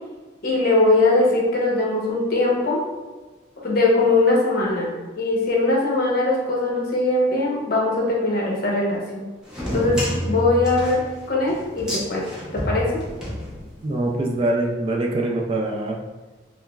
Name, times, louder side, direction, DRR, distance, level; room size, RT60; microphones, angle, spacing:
voice 1, 0.4-2.8 3.6-9.3 9.7-11.0 11.3-13.0, left 2 dB, 50° left, -3 dB, 0.8 m, -21 dB
sound 1, 9.5-14.0, equal, 5° right, 0.7 m, -29 dB
voice 2, 13.8-16.0, right 2 dB, 30° right, 0 dB, 0.3 m, -23 dB
5.6 x 2.0 x 2.3 m, 1.2 s
head